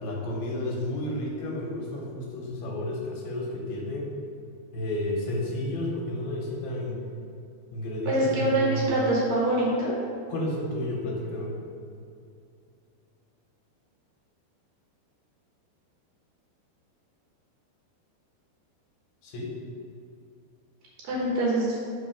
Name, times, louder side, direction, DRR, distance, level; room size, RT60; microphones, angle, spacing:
voice 1, 0.0-4.1 4.7-7.0 7.7-8.9 10.3-11.5 19.2-19.5, left 1 dB, 70° left, -2 dB, 2.9 m, -31 dB
voice 2, 8.1-9.9 21.0-21.8, right 1 dB, 65° right, -5 dB, 2.5 m, -24 dB
6.0 x 5.4 x 6.7 m, 2.5 s
omnidirectional pair, 4.8 m